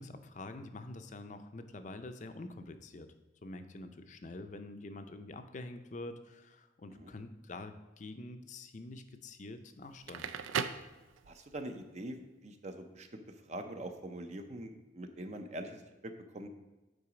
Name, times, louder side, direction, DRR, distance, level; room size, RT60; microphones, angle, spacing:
voice 1, 0.0-3.1 3.4-10.4, left 2 dB, 40° left, 8 dB, 0.5 m, -46 dB
Crackle, 9.9-11.6, right 7 dB, 85° right, 0.4 m, -37 dB
voice 2, 11.3-12.2 12.4-13.2 13.5-16.5, right 1 dB, 35° right, 6 dB, 0.5 m, -43 dB
8.7 x 3.9 x 4.9 m, 1.1 s
head